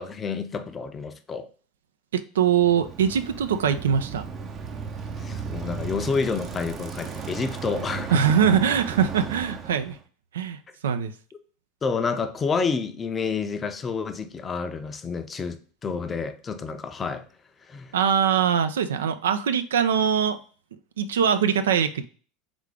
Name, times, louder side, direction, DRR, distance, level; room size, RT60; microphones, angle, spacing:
voice 1, 0.0-1.5 5.2-8.2 11.8-17.3 17.7-17.9, left 5 dB, 25° left, 0.6 m, -29 dB
voice 2, 2.1-4.3 8.1-10.0 10.3-11.1 17.9-20.4 21.0-22.0, right 8 dB, 75° right, 0.4 m, -22 dB
Bicycle, 2.5-10.0, right 6 dB, 35° right, 0.6 m, -35 dB
3.6 x 3.6 x 3.3 m
hypercardioid pair, 80°, 0 cm